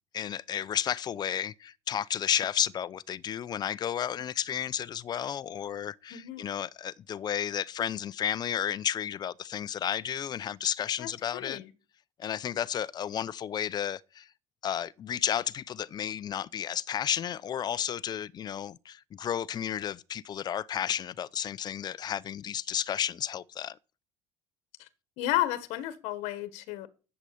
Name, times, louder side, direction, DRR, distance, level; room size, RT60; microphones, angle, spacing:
voice 1, 0.1-11.6 12.2-14.3 14.6-23.8, left 9 dB, 40° left, 0.6 m, -32 dB
voice 2, 6.1-6.4 11.0-11.7 24.8-24.9 25.2-26.9, left 14 dB, 85° left, 1.5 m, -32 dB
11.5 x 7.7 x 6.9 m
cardioid pair, 125°, 11 cm